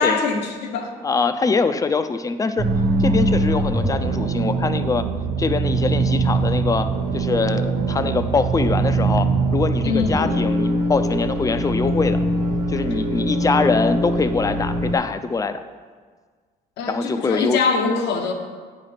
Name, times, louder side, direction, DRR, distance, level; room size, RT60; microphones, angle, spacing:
voice 1, 0.0-0.9 9.8-10.2 14.5-14.6 16.8-18.3, left 5 dB, 85° left, 4 dB, 1.0 m, -23 dB
voice 2, 1.0-2.7 3.0-5.1 5.4-6.9 7.1-12.2 12.7-15.6 16.8-17.6, left 4 dB, 20° left, 10 dB, 0.5 m, -23 dB
sound 1, 2.6-14.9, right 2 dB, 70° right, 1.3 m, -22 dB
8.8 x 5.7 x 5.1 m, 1.6 s
cardioid pair, 110°, 17 cm